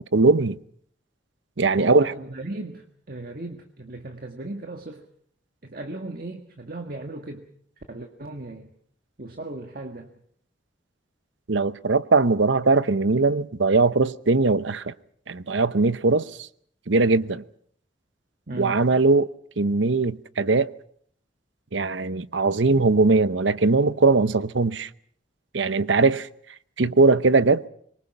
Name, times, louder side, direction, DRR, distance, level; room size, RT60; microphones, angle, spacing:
voice 1, 0.1-0.6 1.6-2.1 11.5-14.9 15.3-16.5 16.9-17.4 18.6-19.3 19.6-20.7 21.7-24.9 25.5-26.3 26.8-27.6, right 3 dB, 85° right, 0.9 m, -20 dB
voice 2, 1.7-5.0 5.6-7.5 7.9-8.7 9.2-10.1 18.5-18.8, right 2 dB, 50° right, 1.7 m, -36 dB
25.5 x 23.0 x 6.0 m
head